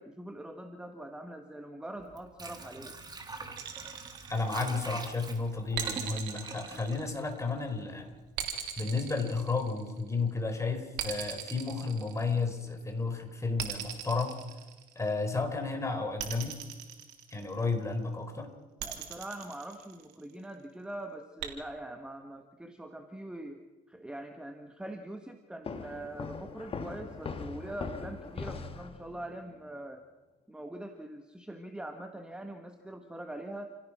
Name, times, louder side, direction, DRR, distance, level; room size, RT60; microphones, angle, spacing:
voice 1, 0.0-3.0 4.7-4.8 18.8-23.6 23.9-30.0 30.5-33.8, right 1 dB, 5° right, 5 dB, 1.6 m, -43 dB
Water / Sink (filling or washing), 2.0-7.9 8.2-8.3, right 3 dB, 25° right, 3.0 m, -45 dB
sound 1, 3.6-5.0 5.8-7.6 8.4-10.1 11.0-12.7 13.6-15.2 16.2-17.7 18.8-20.3 21.4-21.5, right 10 dB, 85° right, 3.5 m, -39 dB
voice 2, 4.3-8.1 8.8-14.4 15.0-16.5 17.3-18.5, left 3 dB, 15° left, 5 dB, 4.5 m, -32 dB
sound 2, 25.6-29.3, left 5 dB, 35° left, 1.9 m, -40 dB
29.0 x 16.5 x 6.2 m, 1.2 s
cardioid pair, 110°, 17 cm